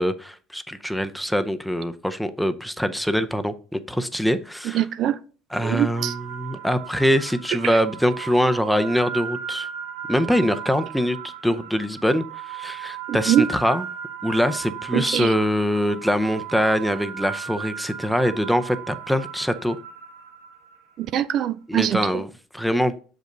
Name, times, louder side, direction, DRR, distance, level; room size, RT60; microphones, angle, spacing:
voice 1, 0.0-4.8 5.5-9.7 10.1-13.8 14.2-19.8 21.7-23.0, equal, ahead, 0.6 m, -23 dB
voice 2, 4.6-5.2 5.6-6.1 7.6-7.8 13.1-13.5 14.9-15.3 21.0-22.2, right 11 dB, 50° right, 0.4 m, -23 dB
sound 1, 5.9-21.1, right 8 dB, 80° right, 1.3 m, -36 dB
6.5 x 5.2 x 3.8 m
cardioid pair, 115°, 0 cm